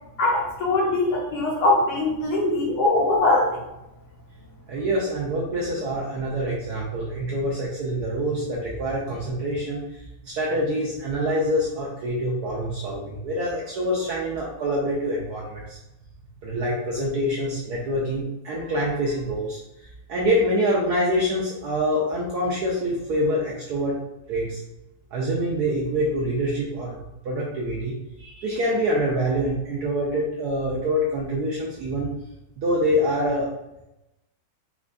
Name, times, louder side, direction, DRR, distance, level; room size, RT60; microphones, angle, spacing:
voice 1, 0.2-3.6, left 2 dB, 70° left, -3 dB, 1.0 m, -21 dB
voice 2, 4.7-15.8 16.4-19.6 20.1-24.0 24.3-24.6 25.1-32.1 32.6-33.5, equal, 75° right, -4 dB, 0.9 m, -25 dB
4.4 x 2.2 x 2.5 m, 0.90 s
omnidirectional pair, 2.2 m